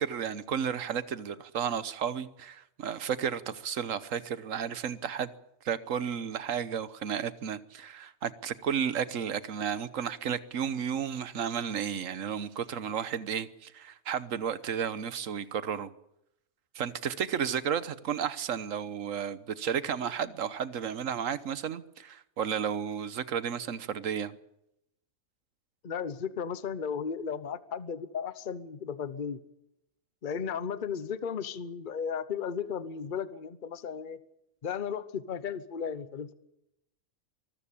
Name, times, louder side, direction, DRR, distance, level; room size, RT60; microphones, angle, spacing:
voice 1, 0.0-5.3 5.6-15.9 16.7-24.4, right 8 dB, 70° right, 1.3 m, -33 dB
voice 2, 25.8-29.4 30.2-34.2 34.6-36.3, left 7 dB, 40° left, 1.0 m, -35 dB
24.0 x 14.5 x 8.5 m
omnidirectional pair, 1.4 m